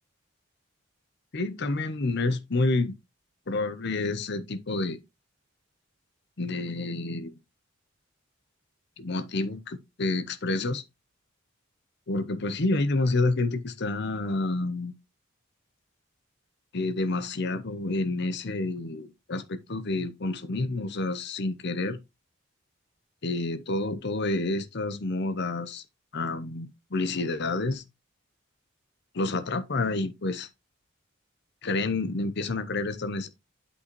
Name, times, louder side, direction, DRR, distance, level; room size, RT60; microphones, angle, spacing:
voice 1, 1.3-3.0 3.5-5.0 6.4-7.4 9.0-10.8 12.1-14.9 16.7-22.0 23.2-25.8 26.1-27.8 29.1-30.5 31.6-33.3, left 2 dB, 55° left, 0.8 m, -29 dB
8.3 x 5.6 x 3.0 m
head